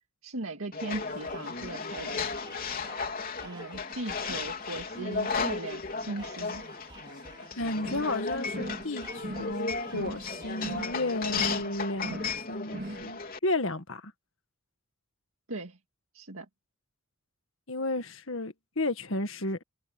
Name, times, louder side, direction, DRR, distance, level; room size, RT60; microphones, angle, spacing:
voice 1, 0.2-2.2 3.4-6.6 15.5-15.8 16.1-16.5, right 2 dB, 75° right, 2.1 m, -38 dB
sound 1, 0.7-13.4, left 4 dB, 40° left, 3.7 m, -35 dB
sound 2, 0.8-10.8, right 2 dB, 20° right, 3.1 m, -51 dB
voice 2, 7.6-14.1 17.7-19.6, left 2 dB, 65° left, 1.8 m, -33 dB
sound 3, 7.8-8.2 8.5-8.9 9.2-9.6 9.9-10.3 10.6-11.0 11.3-11.7 12.0-12.4 12.7-13.1, right 1 dB, 45° right, 3.6 m, -39 dB
head